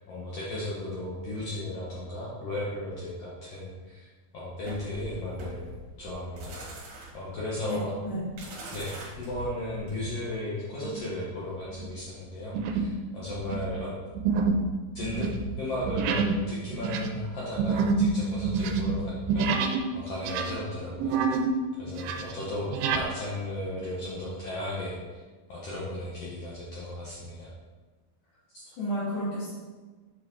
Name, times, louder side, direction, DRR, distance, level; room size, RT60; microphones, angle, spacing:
voice 1, 0.0-4.1 4.3-5.7 6.0-6.6 7.1-8.0 8.7-13.9 14.9-15.3 15.6-21.2 21.8-25.2 25.5-27.5 28.5-28.6, left 1 dB, 85° left, -6 dB, 1.3 m, -35 dB
sound 1, 4.6-10.3, right 2 dB, 65° right, 2.3 m, -43 dB
sound 2, 10.8-11.2 11.7-11.9 12.5-13.0 13.3-19.9 20.2-21.6 21.9-23.1, right 4 dB, 80° right, 2.4 m, -28 dB
voice 2, 28.7-29.5, equal, 60° left, -11 dB, 3.1 m, -32 dB
7.1 x 4.7 x 3.7 m, 1.3 s
omnidirectional pair, 4.3 m